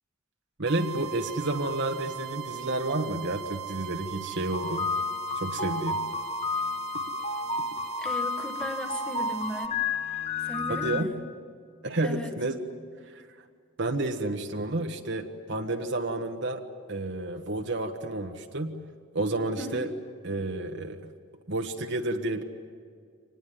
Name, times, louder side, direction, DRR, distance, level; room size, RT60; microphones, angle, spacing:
voice 1, 0.6-4.9 5.3-6.0 10.7-11.1 11.8-12.6 13.0-13.2 13.8-16.6 16.9-18.7 19.1-19.9 20.2-21.0 21.5-22.4, right 2 dB, 55° right, 4 dB, 1.4 m, -30 dB
sound 1, 0.7-9.7, right 10 dB, 80° right, 1.5 m, -39 dB
sound 2, 4.5-11.0, left 4 dB, 30° left, 1.1 m, -31 dB
voice 2, 8.0-11.2 12.0-12.3 19.6-19.9, equal, 5° left, 6 dB, 1.6 m, -37 dB
25.5 x 20.0 x 9.4 m, 2.1 s
head